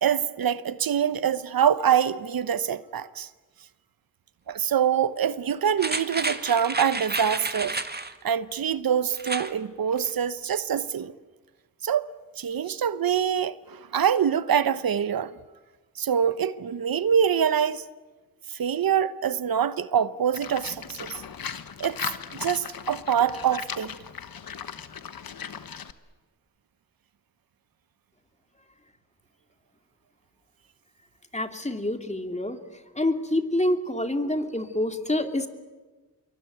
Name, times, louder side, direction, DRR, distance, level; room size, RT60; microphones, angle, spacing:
voice 1, 0.0-3.3 4.5-7.8 8.2-11.1 11.8-12.1 12.4-15.3 16.0-17.8 18.5-21.2 21.8-22.0 22.3-23.9, right 8 dB, 85° right, 0.9 m, -25 dB
sound 1, 5.8-8.1 9.1-9.5 9.9-10.0, right 2 dB, 30° right, 2.0 m, -31 dB
Livestock farm animals working animals, 20.3-25.9, left 7 dB, 85° left, 1.3 m, -37 dB
voice 2, 31.3-32.6 33.0-35.5, left 1 dB, 20° left, 2.8 m, -27 dB
26.5 x 23.0 x 9.3 m
cardioid pair, 40°, 34 cm